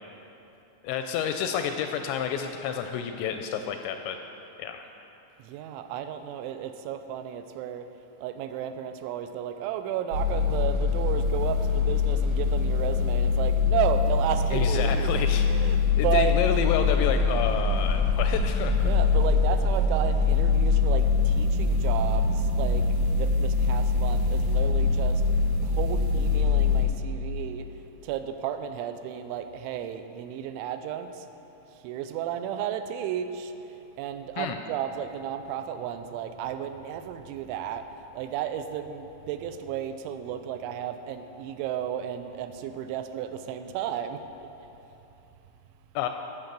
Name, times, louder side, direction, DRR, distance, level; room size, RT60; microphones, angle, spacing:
voice 1, 0.8-4.2 4.6-4.8 14.5-15.4 16.0-18.9 34.4-34.6 46.0-46.1, left 8 dB, 85° left, 6 dB, 2.6 m, -29 dB
voice 2, 5.4-7.9 8.2-15.2 15.5-16.4 18.8-25.2 25.6-27.7 28.0-31.3 31.7-37.9 38.1-44.2, right 9 dB, 85° right, 9 dB, 3.0 m, -33 dB
sound 1, 10.1-26.8, left 4 dB, 55° right, 2.6 m, -23 dB
14.5 x 5.9 x 6.7 m, 2.9 s
omnidirectional pair, 5.4 m